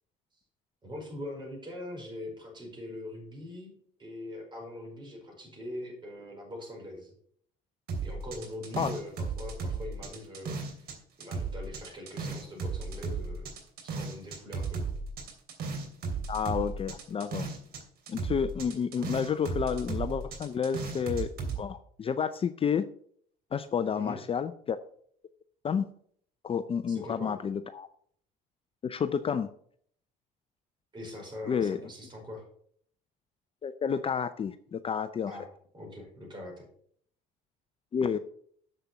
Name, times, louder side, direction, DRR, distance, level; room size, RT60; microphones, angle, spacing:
voice 1, 0.8-3.7 4.0-7.1 8.0-9.1 9.4-13.5 13.9-14.8 24.0-24.2 26.9-27.3 30.9-32.4 35.3-35.5 35.7-36.7, left 1 dB, 25° right, 0 dB, 5.4 m, -42 dB
sound 1, 7.9-10.9 11.2-17.8 18.1-21.6, right 4 dB, 65° right, 2.9 m, -35 dB
voice 2, 16.3-17.5 18.1-21.3 21.6-22.9 23.5-24.8 25.6-25.9 26.4-27.9 28.8-29.5 31.5-31.8 33.6-35.3 37.9-38.2, left 7 dB, 30° left, 12 dB, 0.5 m, -30 dB
7.5 x 6.7 x 7.0 m, 0.62 s
supercardioid pair, 95°, 18 cm